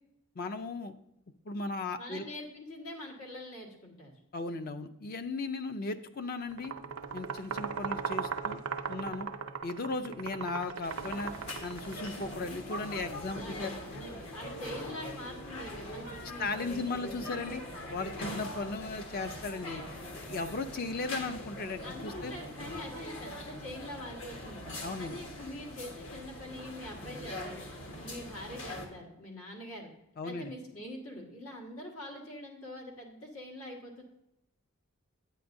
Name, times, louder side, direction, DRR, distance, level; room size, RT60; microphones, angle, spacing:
voice 1, 0.4-0.9 1.5-2.3 4.3-6.7 7.1-8.6 8.9-9.3 9.6-11.3 11.6-14.0 16.4-17.6 17.9-22.3 24.8-25.2 30.2-30.5, left 3 dB, 45° left, 9 dB, 0.4 m, -36 dB
voice 2, 2.0-4.1 13.3-17.1 18.2-18.5 21.8-24.6 25.0-27.6 28.0-29.9 30.2-34.0, left 1 dB, 85° left, 0 dB, 1.7 m, -44 dB
sound 1, 6.5-12.2, right 6 dB, 85° right, 0.6 m, -38 dB
sound 2, 10.8-28.9, left 1 dB, 65° left, 1.4 m, -42 dB
9.3 x 9.0 x 2.6 m, 0.83 s
head